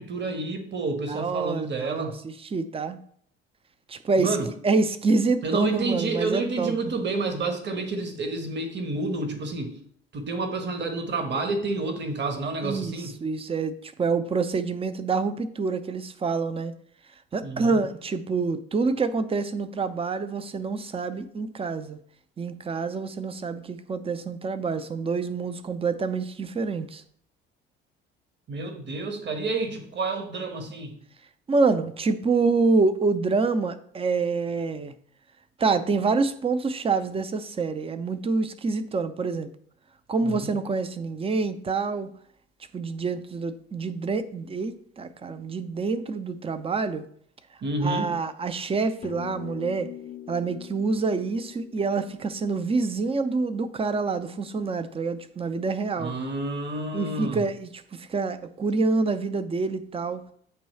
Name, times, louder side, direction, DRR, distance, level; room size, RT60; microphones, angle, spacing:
voice 1, 0.0-2.2 4.2-4.5 5.4-9.7 10.1-13.2 17.4-17.8 28.5-30.9 40.2-40.5 47.6-48.1 56.0-57.4, right 3 dB, 35° right, 5 dB, 1.3 m, -29 dB
voice 2, 1.1-3.0 3.9-6.8 12.6-16.7 17.3-22.0 22.4-27.0 31.5-34.9 35.6-39.5 40.1-42.1 42.7-47.0 47.8-49.9 50.3-56.1 56.9-60.2, right 4 dB, 20° right, 11 dB, 0.6 m, -27 dB
sound 1, 49.0-53.7, left 10 dB, 25° left, 0.5 m, -43 dB
8.7 x 3.1 x 4.2 m, 0.63 s
figure-of-eight pair, 55°, 30 cm